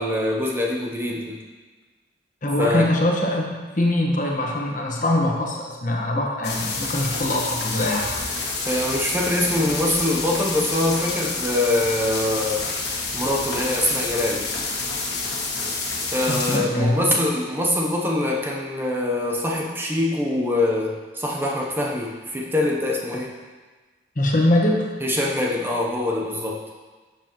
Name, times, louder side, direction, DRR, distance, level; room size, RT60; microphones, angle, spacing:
voice 1, 0.0-1.4 2.6-2.9 8.7-12.6 13.1-14.5 16.1-23.4 25.0-26.6, left 1 dB, 10° right, -2 dB, 0.7 m, -24 dB
voice 2, 2.4-8.1 16.3-17.1 24.2-24.9, left 1 dB, 45° left, -1 dB, 1.3 m, -22 dB
sound 1, 6.4-16.6, left 3 dB, 65° left, 1.6 m, -28 dB
11.0 x 7.1 x 3.0 m, 1.4 s
head